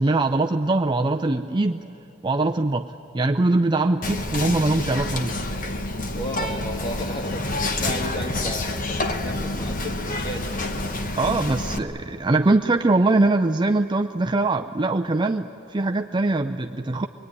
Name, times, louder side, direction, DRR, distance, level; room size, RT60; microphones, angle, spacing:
voice 1, 0.0-1.8 2.2-5.4 11.2-17.1, right 2 dB, 20° right, 5 dB, 0.5 m, -22 dB
Whispering, 4.0-11.8, left 2 dB, 40° left, 1.2 m, -28 dB
voice 2, 6.1-10.7, equal, 20° left, 3 dB, 1.9 m, -34 dB
24.5 x 22.5 x 9.7 m, 2.9 s
head